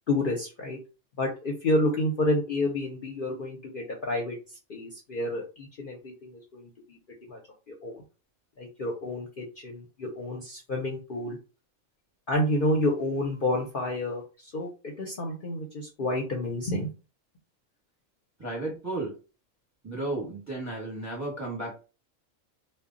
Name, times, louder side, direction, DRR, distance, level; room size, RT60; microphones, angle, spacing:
voice 1, 0.1-0.8 1.2-4.4 4.7-7.0 7.3-7.4 7.7-8.0 8.6-11.4 12.3-16.9, left 1 dB, 55° left, -1 dB, 0.7 m, -29 dB
voice 2, 18.4-19.2 19.8-21.8, right 2 dB, 15° right, -2 dB, 0.9 m, -33 dB
2.2 x 2.1 x 3.7 m, 0.32 s
omnidirectional pair, 1.4 m